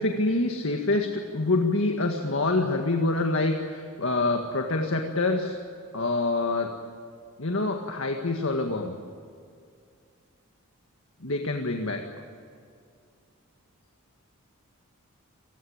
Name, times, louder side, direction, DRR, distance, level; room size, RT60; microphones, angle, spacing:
voice 1, 0.0-5.6 5.9-6.7 7.4-8.9 11.2-12.0, left 2 dB, 60° left, 3 dB, 1.9 m, -26 dB
28.5 x 20.0 x 8.8 m, 2.3 s
head